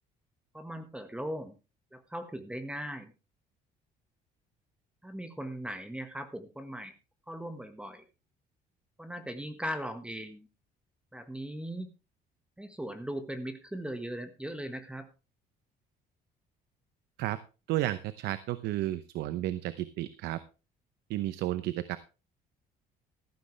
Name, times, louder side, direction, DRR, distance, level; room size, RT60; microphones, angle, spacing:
voice 1, 0.5-1.5 1.9-3.1 5.0-6.9 7.3-8.0 9.0-10.5 11.1-11.9 12.6-15.1, equal, 5° right, 8 dB, 1.5 m, -39 dB
voice 2, 17.7-20.4 21.1-22.0, right 14 dB, 85° right, 14 dB, 0.8 m, -32 dB
14.0 x 12.0 x 3.3 m, 0.31 s
cardioid pair, 110°, 17 cm